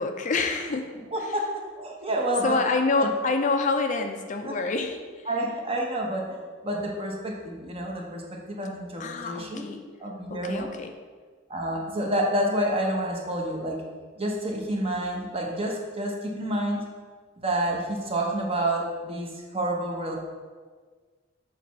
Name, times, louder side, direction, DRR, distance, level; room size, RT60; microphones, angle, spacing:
voice 1, 0.0-0.9 1.2-1.3 2.4-5.3 9.0-9.8 10.3-10.9, left 3 dB, 40° left, 5 dB, 0.4 m, -27 dB
voice 2, 1.1-1.5 1.8-2.6 3.0-3.1 4.4-4.5 5.3-6.4 6.6-9.7 10.0-10.7 11.5-13.8 14.2-16.8 17.4-20.2, right 1 dB, 30° right, -1 dB, 1.0 m, -29 dB
6.6 x 3.1 x 5.7 m, 1.5 s
head